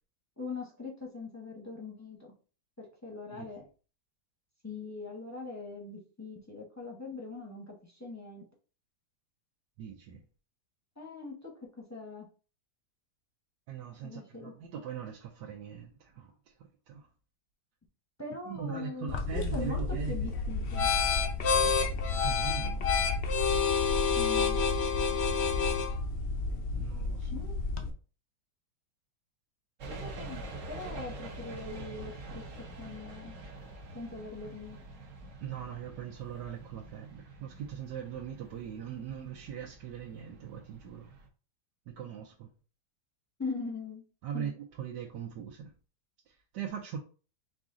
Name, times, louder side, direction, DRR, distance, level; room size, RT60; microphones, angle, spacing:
voice 1, 0.4-2.3 2.8-3.6 4.6-8.4 11.0-12.3 14.0-14.5 18.2-20.9 24.2-24.6 27.3-27.5 29.9-30.4 30.7-32.4 32.8-33.4 33.9-34.8 43.4-44.0 44.3-44.5, left 3 dB, 15° left, 0.7 m, -41 dB
voice 2, 9.8-10.2 13.7-16.3 16.9-17.1 18.5-20.2 22.2-22.9 26.7-27.3 35.4-41.1 41.9-42.5 44.2-45.7 46.3-47.0, right 8 dB, 90° right, 1.3 m, -40 dB
sound 1, 19.1-27.9, left 5 dB, 65° left, 0.6 m, -29 dB
sound 2, 29.8-41.3, right 2 dB, 55° right, 1.1 m, -46 dB
4.9 x 2.5 x 3.7 m
omnidirectional pair, 1.8 m